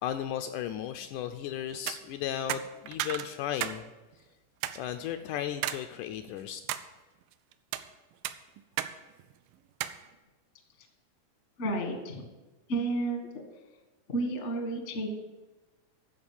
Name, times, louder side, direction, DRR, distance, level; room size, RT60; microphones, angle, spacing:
voice 1, 0.0-3.9 4.8-6.6, left 10 dB, 80° left, 7 dB, 1.8 m, -35 dB
sound 1, 1.7-2.0 2.5-3.8 4.1-4.2 4.6-4.8 5.6-5.8 6.3-6.9 7.5-7.9 8.2-8.9 9.2-9.3 9.8-10.0, right 13 dB, 90° right, 2.2 m, -34 dB
voice 2, 11.6-12.3 12.7-13.4 14.1-15.1, right 2 dB, 45° left, 3 dB, 0.8 m, -31 dB
13.5 x 5.0 x 7.1 m, 1.2 s
omnidirectional pair, 3.8 m